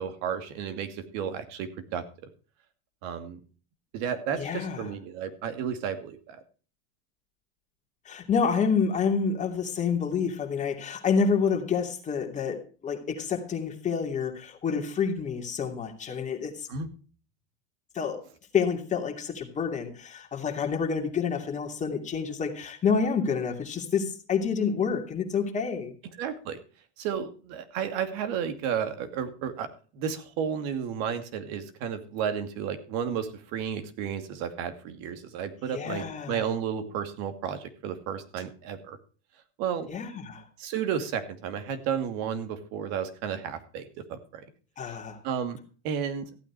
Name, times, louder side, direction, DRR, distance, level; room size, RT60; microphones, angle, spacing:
voice 1, 0.0-2.0 3.0-3.4 3.9-6.4 16.7-16.9 26.2-26.6 27.0-29.7 29.9-39.0 39.6-39.9 40.6-44.4 44.9-45.0 45.2-45.6 45.8-46.3, right 8 dB, 50° right, 9 dB, 2.5 m, -32 dB
voice 2, 4.4-4.9 8.1-16.7 17.9-18.2 18.5-25.9 35.7-36.5 39.9-40.4 44.8-45.2, left 6 dB, 20° left, 3 dB, 2.8 m, -28 dB
15.0 x 9.0 x 4.7 m, 0.38 s
supercardioid pair, 130°, 33 cm